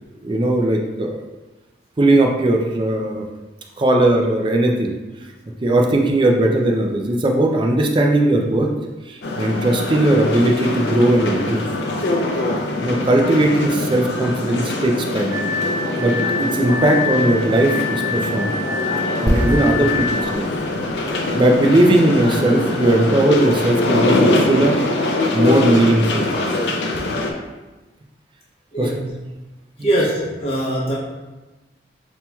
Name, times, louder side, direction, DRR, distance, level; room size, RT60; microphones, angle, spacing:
voice 1, 0.2-1.2 2.0-3.3 3.8-4.9 5.6-8.7 9.1-11.6 12.8-15.3 16.0-18.5 19.2-20.5 21.3-24.8 25.3-26.4 28.8-28.9 29.8-29.9, right 1 dB, 30° right, 1 dB, 0.4 m, -18 dB
sound 1, 9.2-27.3, left 2 dB, 75° left, 0.5 m, -23 dB
Glass, 15.3-20.3, left 5 dB, 80° right, 1.1 m, -26 dB
sound 2, 19.3-22.9 23.2-23.4, equal, 20° left, 1.4 m, -27 dB
voice 2, 20.8-21.2 28.7-29.0 29.8-30.9, right 1 dB, 35° left, -6 dB, 0.8 m, -22 dB
5.5 x 3.0 x 2.3 m, 1.1 s
head